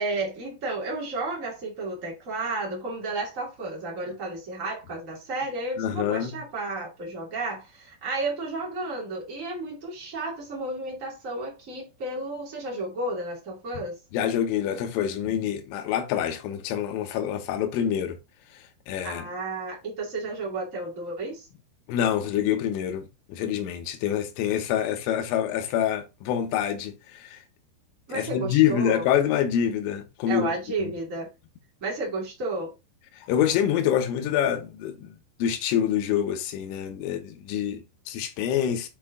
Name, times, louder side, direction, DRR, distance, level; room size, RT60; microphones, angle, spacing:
voice 1, 0.0-14.0 19.0-21.5 28.1-29.0 30.3-31.3 31.8-32.7, right 2 dB, 60° right, 0.8 m, -32 dB
voice 2, 5.8-6.4 14.1-18.2 18.5-19.2 21.9-27.4 28.1-30.5 30.8-30.9 33.1-38.9, left 10 dB, 80° left, 3.7 m, -26 dB
8.1 x 4.6 x 3.7 m
omnidirectional pair, 5.8 m